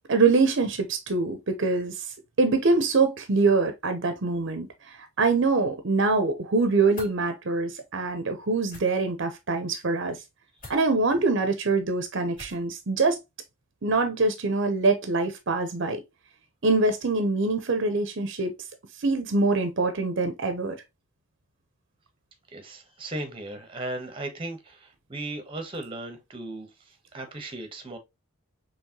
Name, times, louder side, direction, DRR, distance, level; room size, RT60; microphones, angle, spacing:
voice 1, 0.1-10.2 10.7-13.2 13.8-16.0 16.6-18.5 19.0-20.8, right 3 dB, 55° right, 0.7 m, -24 dB
sound 1, 6.9-7.2 8.6-8.8 10.6-10.8 12.3-12.7, left 1 dB, 40° left, 2.6 m, -43 dB
voice 2, 22.5-26.7 27.1-28.0, right 2 dB, 25° right, 0.9 m, -36 dB
4.6 x 3.1 x 2.8 m
head